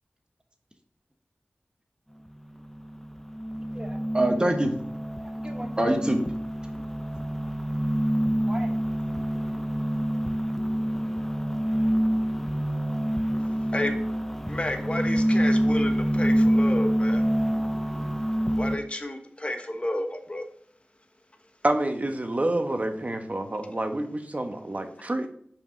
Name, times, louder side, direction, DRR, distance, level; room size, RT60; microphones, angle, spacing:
sound 1, 2.3-18.8, equal, 5° left, 0.7 m, -26 dB
voice 1, 3.7-4.7 5.2-6.2 8.5-8.7, right 1 dB, 25° right, 3 dB, 1.3 m, -26 dB
voice 2, 14.5-17.2 18.6-20.4, left 1 dB, 30° left, 5 dB, 1.1 m, -31 dB
voice 3, 21.6-25.3, right 1 dB, 40° right, 6 dB, 1.1 m, -28 dB
5.5 x 5.0 x 4.0 m, 0.62 s
cardioid pair, 45°, 4 cm